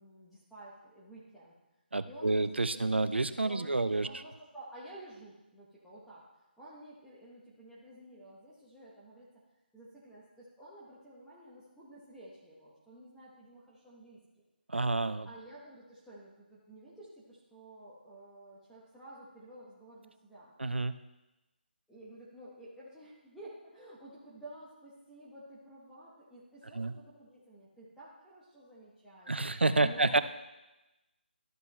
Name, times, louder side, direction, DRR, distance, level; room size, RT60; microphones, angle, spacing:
voice 1, 0.0-1.5 2.1-6.3 6.6-9.3 9.7-14.2 15.2-20.5 21.9-30.2, right 1 dB, ahead, -10 dB, 1.1 m, -52 dB
voice 2, 1.9-4.1 14.7-15.3 20.6-20.9 26.8-26.9 29.3-30.2, right 2 dB, 80° right, 13 dB, 0.5 m, -29 dB
12.5 x 5.3 x 3.2 m, 1.0 s
figure-of-eight pair, 150°, 6 cm